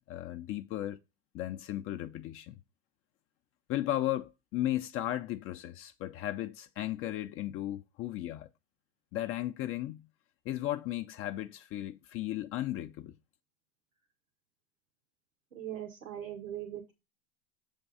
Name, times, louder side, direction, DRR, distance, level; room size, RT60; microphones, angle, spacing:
voice 1, 0.1-1.0 1.3-2.6 3.7-8.5 9.1-10.1 10.5-13.1, left 14 dB, 35° left, 0.5 m, -35 dB
voice 2, 15.5-16.9, right 11 dB, 90° right, 1.4 m, -40 dB
6.9 x 3.5 x 5.4 m
hypercardioid pair, 100°, 38 cm